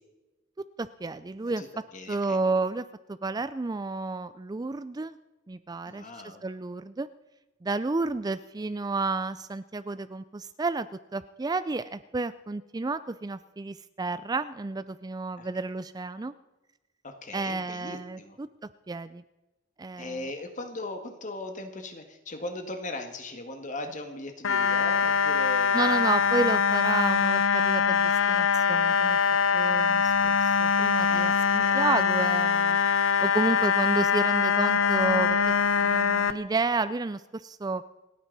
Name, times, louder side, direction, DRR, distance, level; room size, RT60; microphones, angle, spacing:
voice 1, 0.8-1.6 2.1-5.2 5.5-6.1 6.4-7.1 7.6-16.3 17.3-18.5 18.9-19.2 19.8-20.3 25.7-29.2 29.5-32.8 33.2-35.5 35.8-37.8, right 3 dB, 20° right, 14 dB, 0.4 m, -31 dB
voice 2, 1.9-2.4 5.9-6.4 15.4-15.5 17.0-18.4 20.0-26.1 31.1-31.8, left 2 dB, 40° left, 5 dB, 1.9 m, -39 dB
sound 1, 24.4-36.3, left 6 dB, 90° left, 0.8 m, -23 dB
28.5 x 9.5 x 4.1 m, 1.1 s
head